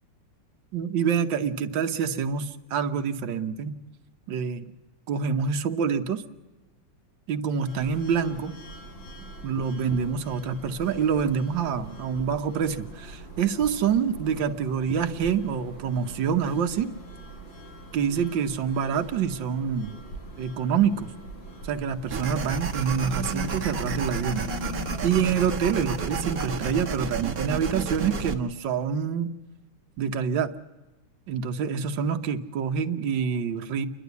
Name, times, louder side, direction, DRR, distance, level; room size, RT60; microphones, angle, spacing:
voice 1, 0.7-3.8 4.3-4.6 5.1-6.2 7.3-8.5 9.4-16.9 17.9-20.0 20.4-21.1 21.6-24.5 25.0-29.3 30.0-30.5 31.3-33.9, right 7 dB, 75° right, 6 dB, 1.7 m, -26 dB
sound 1, 7.7-26.8, right 1 dB, 85° left, 5.6 m, -41 dB
sound 2, 22.1-28.3, right 5 dB, 50° right, 1.8 m, -31 dB
29.0 x 11.5 x 8.2 m, 1.2 s
omnidirectional pair, 2.1 m